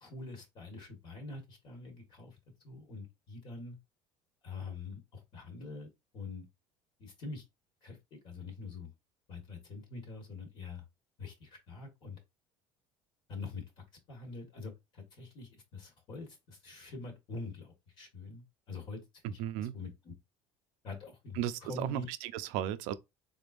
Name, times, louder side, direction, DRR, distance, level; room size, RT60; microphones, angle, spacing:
voice 1, 0.0-2.4 2.6-3.8 4.4-6.4 7.0-7.4 7.8-8.9 9.3-10.8 11.2-12.2 13.3-20.1 20.8-22.1, left 3 dB, 45° left, 1.4 m, -45 dB
voice 2, 19.4-19.8 21.4-22.9, right 12 dB, 80° right, 0.5 m, -35 dB
3.9 x 3.5 x 2.4 m
cardioid pair, 160°, 11 cm